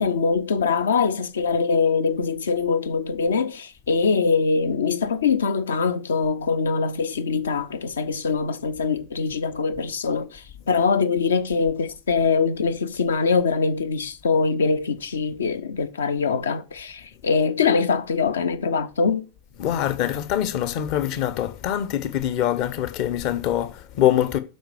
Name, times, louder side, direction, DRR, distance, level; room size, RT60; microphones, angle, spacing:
voice 1, 0.0-19.3, left 5 dB, 65° left, 1.0 m, -23 dB
voice 2, 19.6-24.4, left 11 dB, 45° left, 1.1 m, -24 dB
7.9 x 5.5 x 7.1 m
figure-of-eight pair, 90°, 0 cm